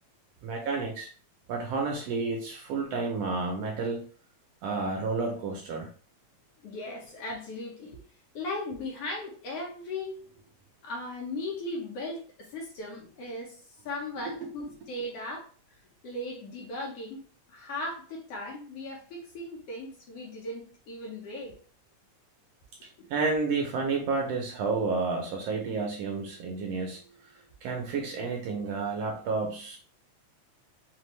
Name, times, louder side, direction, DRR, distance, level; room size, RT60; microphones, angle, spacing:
voice 1, 0.4-1.1 1.5-4.0 4.6-5.9 23.1-27.0 27.6-29.8, right 4 dB, 75° right, 1 dB, 1.6 m, -30 dB
voice 2, 6.6-8.0 8.3-10.2 10.8-15.5 16.0-17.2 17.5-21.6 23.0-23.1, left 2 dB, 65° left, 0 dB, 1.7 m, -37 dB
5.2 x 2.6 x 3.1 m, 0.42 s
omnidirectional pair, 3.3 m